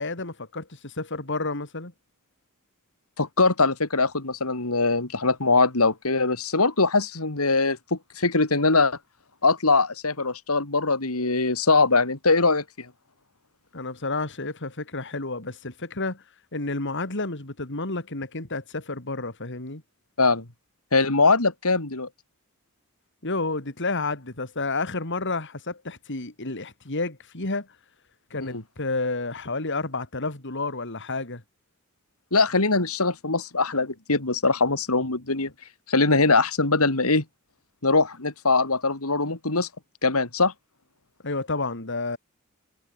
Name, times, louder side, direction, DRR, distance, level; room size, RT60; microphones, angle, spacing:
voice 1, 0.0-1.9 13.7-16.2 16.5-19.8 23.2-27.7 28.3-31.4 41.2-42.2, left 3 dB, 55° left, 3.3 m, -30 dB
voice 2, 3.2-9.0 9.4-12.9 20.2-20.4 20.9-22.1 28.4-28.6 32.3-35.5 35.9-37.2 37.8-39.7 40.0-40.5, left 3 dB, 80° left, 3.1 m, -22 dB
head